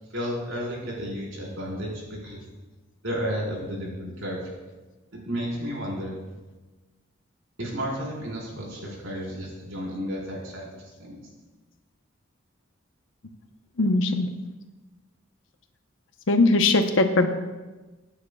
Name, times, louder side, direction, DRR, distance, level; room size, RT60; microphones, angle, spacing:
voice 1, 0.1-1.9 2.2-2.4 3.0-4.4 5.3-6.1 7.6-11.2, equal, 85° right, -4 dB, 4.7 m, -32 dB
voice 2, 13.8-14.3 16.3-17.3, left 2 dB, 75° left, 6 dB, 1.0 m, -20 dB
23.0 x 9.5 x 2.4 m, 1.2 s
head